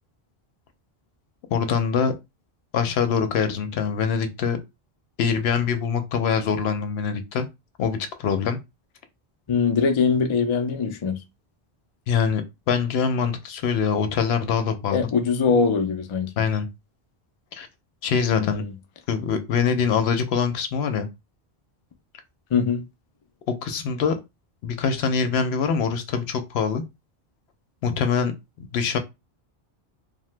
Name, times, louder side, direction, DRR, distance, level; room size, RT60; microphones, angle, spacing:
voice 1, 1.5-2.2 2.7-4.6 5.2-7.5 7.8-8.6 12.1-15.1 16.4-16.7 17.5-17.7 18.0-18.6 19.1-21.1 23.5-24.2 24.6-26.8 27.8-28.3 28.6-29.0, left 6 dB, 85° left, 0.8 m, -24 dB
voice 2, 9.5-11.2 14.9-16.5 18.3-18.8 22.5-22.8, left 5 dB, 45° left, 0.4 m, -22 dB
2.8 x 2.1 x 3.2 m
omnidirectional pair, 1.1 m